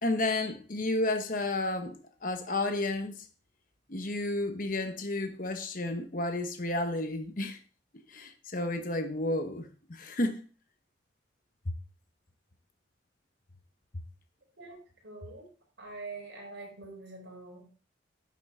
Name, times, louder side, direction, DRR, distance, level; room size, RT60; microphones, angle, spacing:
voice 1, 0.0-1.9 2.2-3.1 3.9-7.6 8.1-10.4, left 2 dB, 45° left, 1.0 m, -31 dB
voice 2, 15.0-15.5 15.8-17.8, right 3 dB, 75° right, 4.8 m, -45 dB
10.5 x 7.7 x 3.6 m
head